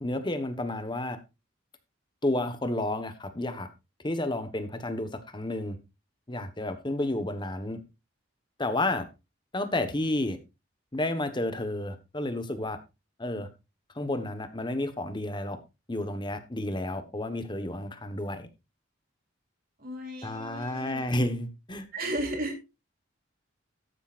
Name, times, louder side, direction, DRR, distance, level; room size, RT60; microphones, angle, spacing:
voice 1, 0.0-1.2 2.2-3.7 4.0-5.8 6.3-7.8 8.6-9.1 9.5-10.4 10.9-12.8 13.2-13.5 13.9-15.6 15.9-18.5 20.2-21.8, left 1 dB, 25° left, 1.3 m, -31 dB
voice 2, 19.8-21.2 21.9-22.6, right 1 dB, 45° right, 3.3 m, -34 dB
13.5 x 10.5 x 2.5 m
head